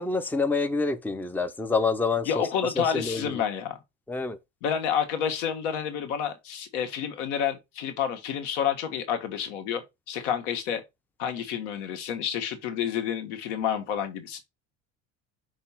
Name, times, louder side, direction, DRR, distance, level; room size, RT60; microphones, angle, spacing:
voice 1, 0.0-2.4 2.8-3.2 4.1-4.4, left 4 dB, 5° left, 0.6 m, -27 dB
voice 2, 2.2-3.8 4.6-10.8 11.2-14.4, left 8 dB, 80° left, 1.6 m, -29 dB
5.9 x 3.0 x 5.7 m
supercardioid pair, 95°, 36 cm